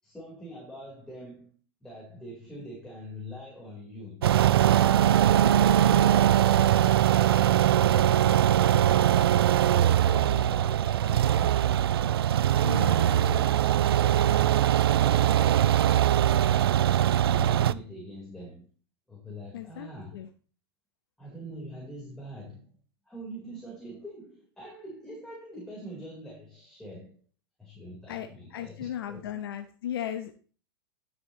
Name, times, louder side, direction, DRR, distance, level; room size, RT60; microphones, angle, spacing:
voice 1, 0.0-4.2 5.2-8.2 8.5-11.8 12.6-13.5 13.8-15.8 17.3-18.7 19.1-20.3 21.2-22.8 23.1-27.2 27.6-29.4, left 1 dB, 5° left, -4 dB, 4.3 m, -43 dB
sound 1, 4.2-17.7, right 11 dB, 70° right, 0.5 m, -22 dB
voice 2, 12.6-13.2 19.5-19.9 20.1-20.3 28.1-30.3, left 10 dB, 65° left, 8 dB, 1.0 m, -36 dB
12.5 x 7.5 x 3.2 m, 0.39 s
hypercardioid pair, 100°, 13 cm